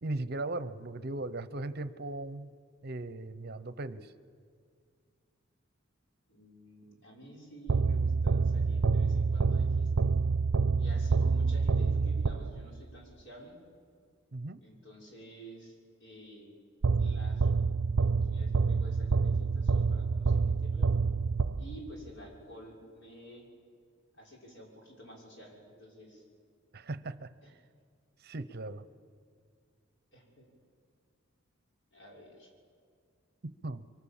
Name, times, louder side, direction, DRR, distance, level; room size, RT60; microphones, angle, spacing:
voice 1, 0.0-2.5 2.8-4.1 14.3-14.6 26.7-27.3 28.2-28.9 33.6-33.8, right 2 dB, 50° right, 14 dB, 0.8 m, -38 dB
voice 2, 6.3-9.9 10.8-13.5 14.6-16.5 17.0-17.5 18.0-20.9 21.6-23.5 24.2-26.2 27.4-27.5 30.1-30.5 31.9-32.5, equal, 60° left, -1 dB, 6.6 m, -51 dB
sound 1, 7.7-12.8 16.8-22.0, right 4 dB, 85° right, 0.5 m, -27 dB
26.0 x 24.0 x 7.3 m, 2.2 s
head